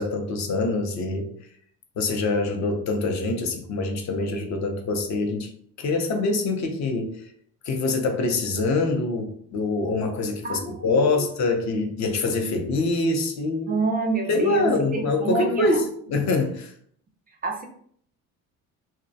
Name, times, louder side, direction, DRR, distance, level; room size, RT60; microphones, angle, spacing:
voice 1, 0.0-1.3 2.0-5.5 5.8-7.3 7.6-13.8 14.3-16.7, left 3 dB, 45° left, 5 dB, 0.6 m, -25 dB
voice 2, 10.4-11.1 13.7-15.7 17.4-17.7, right 3 dB, 25° right, 3 dB, 0.4 m, -27 dB
2.4 x 2.1 x 2.6 m, 0.62 s
supercardioid pair, 85°, 38 cm